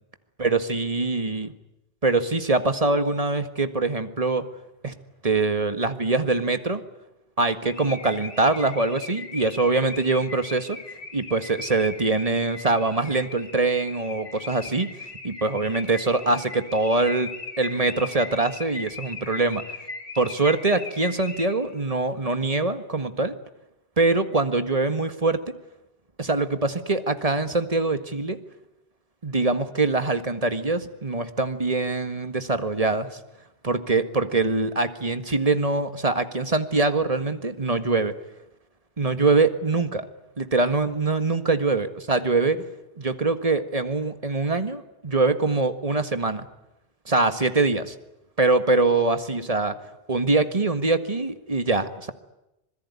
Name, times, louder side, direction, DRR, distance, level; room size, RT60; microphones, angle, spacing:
voice 1, 0.4-1.5 2.0-4.5 4.8-4.9 5.2-6.8 7.4-10.8 11.1-14.9 15.2-19.6 20.2-23.4 24.0-25.6 26.2-28.4 29.2-33.2 33.6-38.1 39.0-40.1 40.4-42.6 43.0-46.5 47.1-48.0 48.4-49.8 50.1-52.1, right 3 dB, 35° right, 10 dB, 1.8 m, -23 dB
Car / Alarm, 7.7-21.8, left 3 dB, 85° left, 2.9 m, -39 dB
26.5 x 21.5 x 9.7 m, 0.90 s
omnidirectional pair, 1.1 m